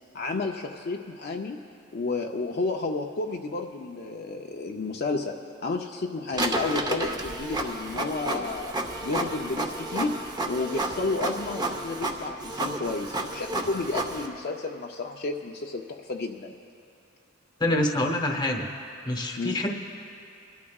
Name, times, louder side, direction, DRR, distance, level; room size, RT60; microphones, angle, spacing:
voice 1, 0.1-1.6 1.9-8.7 9.0-10.2 10.5-16.5 19.4-19.6, left 3 dB, 50° left, 2 dB, 0.5 m, -31 dB
Printer, 6.3-14.3, right 2 dB, 20° right, 0.7 m, -31 dB
voice 2, 17.6-18.7 19.1-19.8, left 1 dB, 20° left, 3 dB, 1.0 m, -26 dB
27.5 x 12.0 x 2.3 m, 2.5 s
head